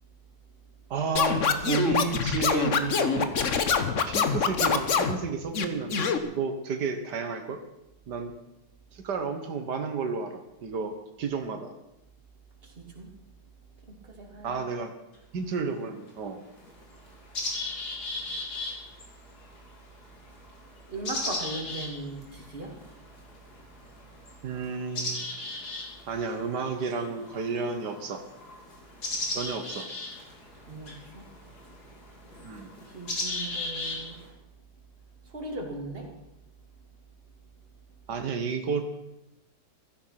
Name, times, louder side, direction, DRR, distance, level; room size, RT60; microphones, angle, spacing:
voice 1, 0.9-3.4 4.1-7.6 8.1-8.3 8.9-11.7 14.4-14.9 15.3-16.4 24.4-25.4 26.1-28.2 29.3-29.9 32.4-32.7 38.1-38.8, right 5 dB, 90° right, 6 dB, 1.9 m, -32 dB
Scratching (performance technique), 1.2-5.2 5.5-6.2, left 6 dB, 50° left, 1.4 m, -25 dB
voice 2, 12.6-13.1 13.9-14.6 20.9-22.8 30.5-31.3 32.9-34.2 35.2-36.1, right 2 dB, 35° right, 1 dB, 2.9 m, -38 dB
sound 1, 15.1-15.2 16.1-16.2 16.6-34.3, left 2 dB, 70° left, 3.8 m, -37 dB
15.5 x 14.0 x 5.9 m, 0.88 s
omnidirectional pair, 1.7 m